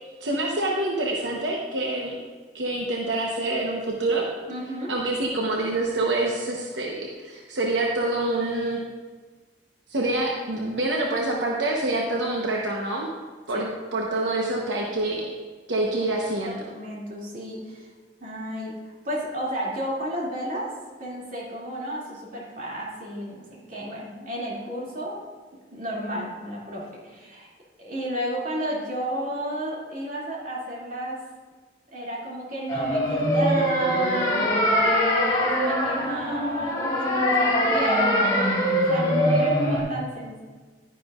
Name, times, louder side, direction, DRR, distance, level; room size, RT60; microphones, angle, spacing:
voice 1, 0.2-2.2 2.5-4.3 4.9-8.8 9.9-13.1 13.5-15.3 15.7-16.6, right 2 dB, 85° right, -1 dB, 1.0 m, -26 dB
voice 2, 4.5-4.9 13.5-13.6 16.4-17.9 18.2-20.7 21.0-25.2 25.7-27.5 27.8-31.2 31.9-34.5 34.8-38.6 38.9-40.4, right 1 dB, 50° right, -4 dB, 2.5 m, -32 dB
sound 1, 32.7-39.8, equal, 20° left, 1.7 m, -22 dB
11.0 x 10.0 x 2.5 m, 1.4 s
head